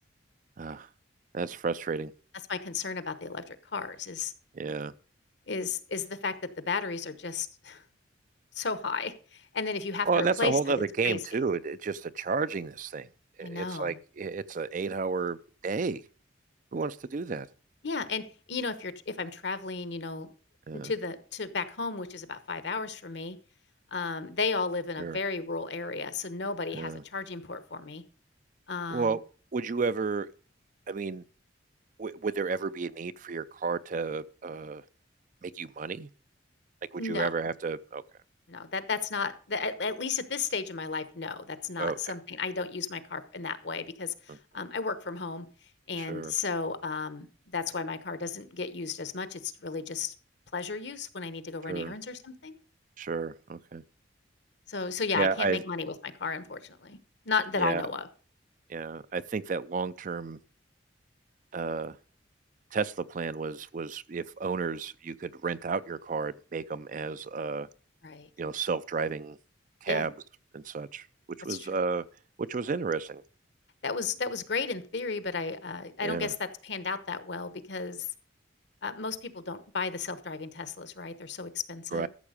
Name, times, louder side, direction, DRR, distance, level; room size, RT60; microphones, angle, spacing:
voice 1, 0.6-0.9 1.3-2.1 4.5-4.9 10.1-13.1 13.4-15.4 15.6-16.0 16.7-17.5 20.7-20.9 25.0-25.2 26.7-27.0 28.9-29.2 29.5-30.3 30.9-31.2 32.0-34.8 35.4-36.1 36.9-38.0 41.8-42.0 44.3-44.4 46.0-46.3 51.7-51.9 53.0-53.8 55.2-55.6 57.6-57.8 58.7-60.4 61.5-62.0 62.7-67.7 68.4-69.4 69.8-70.1 70.5-71.1 71.4-72.0 72.4-73.2 76.0-76.3 81.9-82.1, right 4 dB, 45° right, 0.4 m, -32 dB
voice 2, 2.5-4.3 5.5-7.8 8.5-11.2 13.4-14.0 17.8-20.3 20.7-23.4 23.9-28.0 28.7-29.2 37.0-37.3 38.5-45.5 45.9-47.3 47.5-50.1 50.5-52.6 54.7-57.0 57.3-58.1 68.0-68.3 69.9-70.1 71.5-71.7 73.8-78.1 78.8-82.1, left 4 dB, 65° left, 1.0 m, -34 dB
13.5 x 7.2 x 5.0 m
head